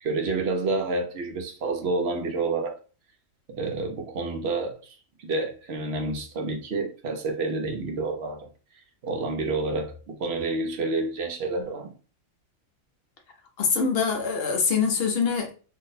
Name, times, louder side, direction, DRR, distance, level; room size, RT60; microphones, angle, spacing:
voice 1, 0.0-2.7 3.6-8.5 9.0-11.9, right 3 dB, 60° right, 0.8 m, -29 dB
voice 2, 13.6-15.5, left 5 dB, 55° left, 0.7 m, -24 dB
2.6 x 2.1 x 3.9 m
omnidirectional pair, 1.5 m